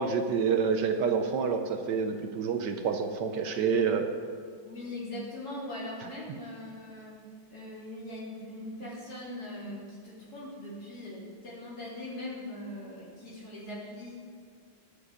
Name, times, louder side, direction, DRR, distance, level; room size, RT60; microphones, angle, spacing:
voice 1, 0.0-4.1, right 6 dB, 70° right, 6 dB, 1.3 m, -28 dB
voice 2, 4.6-7.2 7.5-14.2, left 1 dB, 55° left, -6 dB, 4.1 m, -41 dB
20.5 x 7.0 x 5.0 m, 2.1 s
omnidirectional pair, 2.1 m